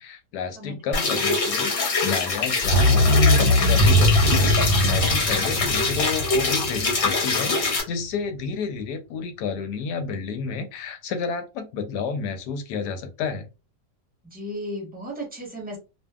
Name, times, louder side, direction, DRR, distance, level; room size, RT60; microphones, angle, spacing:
voice 1, 0.0-13.5, left 5 dB, 75° left, 8 dB, 1.1 m, -30 dB
voice 2, 0.6-1.0 5.5-5.9 14.2-15.8, equal, 5° right, -2 dB, 0.8 m, -35 dB
sound 1, 0.9-7.8, left 3 dB, 50° left, 0.8 m, -24 dB
sound 2, 2.6-7.4 7.7-7.8, left 1 dB, 90° left, 1.3 m, -20 dB
2.6 x 2.4 x 2.3 m, 0.28 s
omnidirectional pair, 1.9 m